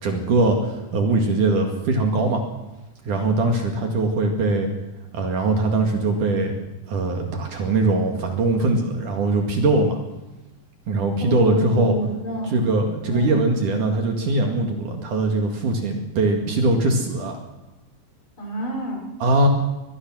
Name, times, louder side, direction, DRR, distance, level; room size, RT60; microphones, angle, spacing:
voice 1, 0.0-2.4 3.0-4.7 5.1-6.5 6.9-10.0 10.9-12.0 12.5-17.4 19.2-19.5, right 2 dB, 60° right, 3 dB, 3.4 m, -21 dB
voice 2, 11.2-12.7 13.1-13.3 18.4-19.0, equal, 30° left, -1 dB, 6.3 m, -28 dB
23.5 x 20.0 x 6.3 m, 1.0 s
omnidirectional pair, 4.3 m